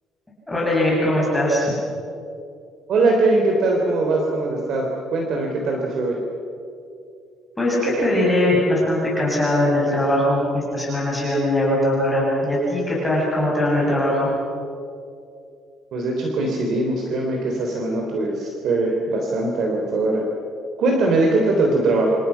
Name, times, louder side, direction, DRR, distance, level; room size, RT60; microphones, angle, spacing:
voice 1, 0.5-1.6 7.6-14.3, left 1 dB, 10° left, -5 dB, 7.5 m, -20 dB
voice 2, 2.9-6.2 15.9-20.2 20.8-22.2, right 2 dB, 50° right, 1 dB, 3.8 m, -21 dB
28.5 x 28.5 x 5.9 m, 2.5 s
cardioid pair, 175°, 0 cm